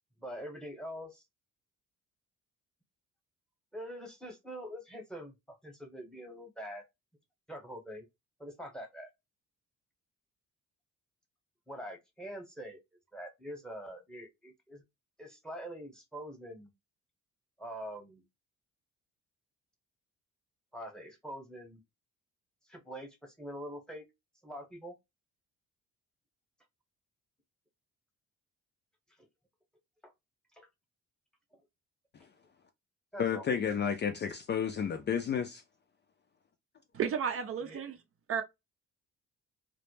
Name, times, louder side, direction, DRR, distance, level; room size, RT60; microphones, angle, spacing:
voice 1, 0.2-1.2 3.7-6.8 7.5-8.1 8.4-9.1 11.7-12.8 13.1-14.8 15.2-16.7 17.6-18.2 20.7-21.8 22.7-24.1 24.4-24.9 30.0-30.1 30.5-30.7 33.1-33.4 37.6-37.8, equal, ahead, 0.9 m, -44 dB
voice 2, 33.2-35.6, left 7 dB, 35° left, 0.4 m, -31 dB
voice 3, 36.9-38.0 38.3-38.4, right 7 dB, 50° right, 0.5 m, -32 dB
2.1 x 2.0 x 3.1 m
cardioid pair, 90°, 30 cm